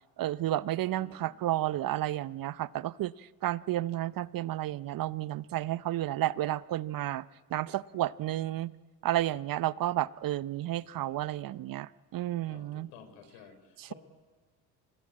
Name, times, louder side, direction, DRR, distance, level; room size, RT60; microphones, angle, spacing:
voice 1, 0.2-7.2 7.5-8.7 9.0-12.9 13.8-13.9, right 14 dB, 45° right, 19 dB, 0.7 m, -32 dB
voice 2, 0.8-1.3 12.5-13.9, left 7 dB, 80° left, 9 dB, 4.1 m, -53 dB
25.5 x 18.5 x 8.7 m, 1.4 s
hypercardioid pair, 70°, 47 cm